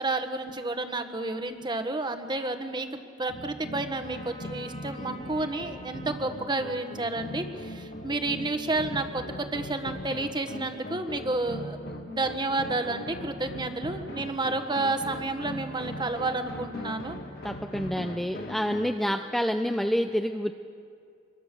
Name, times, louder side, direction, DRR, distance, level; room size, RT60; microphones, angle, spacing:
voice 1, 0.0-11.8 12.1-17.2, right 2 dB, 25° right, 7 dB, 1.4 m, -30 dB
sound 1, 3.3-19.0, equal, 55° left, 1.7 m, -40 dB
Trumpet, 4.0-9.5, left 1 dB, 30° left, 2.6 m, -51 dB
voice 2, 17.4-20.5, equal, ahead, 5 dB, 0.6 m, -28 dB
26.0 x 22.5 x 6.9 m, 2.3 s
head